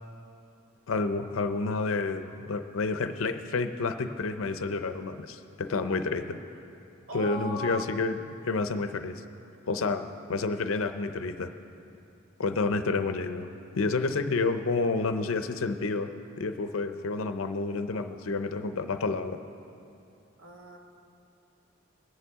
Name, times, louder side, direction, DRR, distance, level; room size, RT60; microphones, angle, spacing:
voice 1, 0.9-6.4 7.1-8.2 8.4-9.2 9.7-11.5 12.4-13.5 13.7-16.1 16.4-19.4, left 3 dB, 90° left, 9 dB, 0.6 m, -29 dB
voice 2, 7.1-7.8 17.9-18.1 20.4-20.8, equal, 90° right, -1 dB, 1.8 m, -38 dB
21.0 x 9.7 x 3.6 m, 2.7 s
head